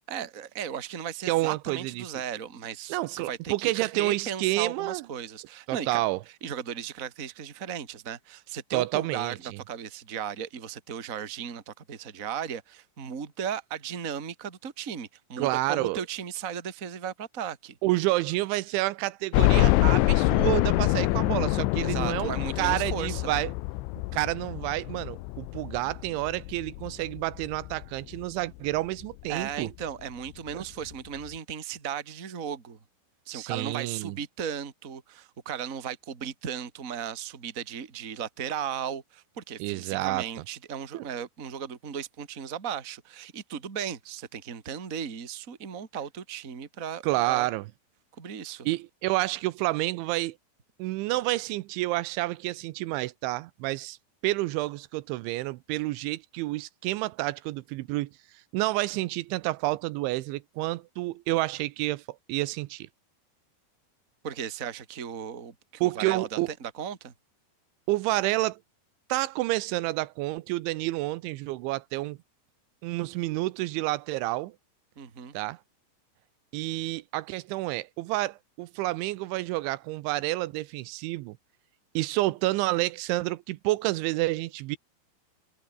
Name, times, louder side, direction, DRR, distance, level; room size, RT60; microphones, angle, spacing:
voice 1, 0.1-6.0 6.4-9.4 9.7-17.8 21.8-23.3 29.3-32.8 33.2-47.5 48.2-48.7 64.2-67.1 74.9-75.3, right 8 dB, 30° right, 1.5 m, -36 dB
voice 2, 1.3-2.1 2.9-5.0 5.7-6.2 8.7-9.6 15.4-16.0 17.8-23.5 24.1-29.7 30.5-30.6 33.3-34.2 39.6-40.3 40.9-41.1 47.0-47.7 48.7-50.4 50.8-54.0 54.2-58.1 58.5-62.0 62.3-62.9 65.8-66.5 67.9-68.6 69.1-72.2 72.8-74.6 75.3-75.6 76.5-81.4 82.0-84.8, right 19 dB, 85° right, 3.1 m, -29 dB
sound 1, 19.3-28.2 28.7-28.8 29.2-29.3 30.5-30.6 30.9-31.0, left 20 dB, 80° left, 3.0 m, -26 dB
omnidirectional pair, 5.4 m